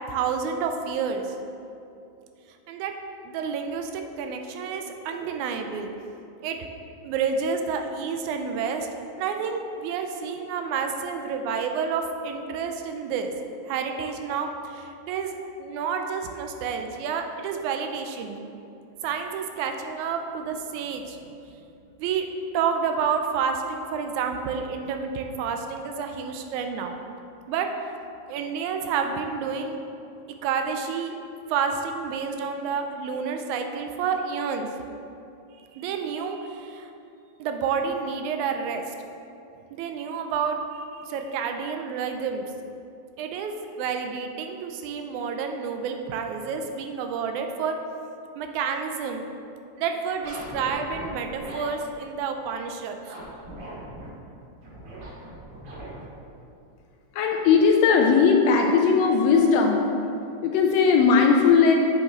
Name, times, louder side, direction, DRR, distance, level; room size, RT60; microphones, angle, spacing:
voice 1, 0.1-1.3 2.7-2.9 3.3-5.9 6.4-6.6 7.0-8.9 9.2-13.3 13.7-15.3 15.6-18.4 19.0-21.2 22.0-22.3 22.5-27.0 27.5-27.7 28.3-29.8 30.4-31.1 31.5-34.7 35.7-36.9 37.4-38.8 39.7-40.6 40.9-42.4 43.2-47.8 48.4-49.3 49.8-53.0, right 6 dB, 90° right, 5 dB, 2.0 m, -29 dB
sound 1, 50.2-51.7 53.0-54.1 54.6-56.0, right 1 dB, 65° right, 2.8 m, -40 dB
voice 2, 57.1-59.9 60.4-61.8, left 5 dB, 80° left, 2 dB, 1.6 m, -18 dB
7.6 x 4.9 x 4.1 m, 2.7 s
omnidirectional pair, 3.3 m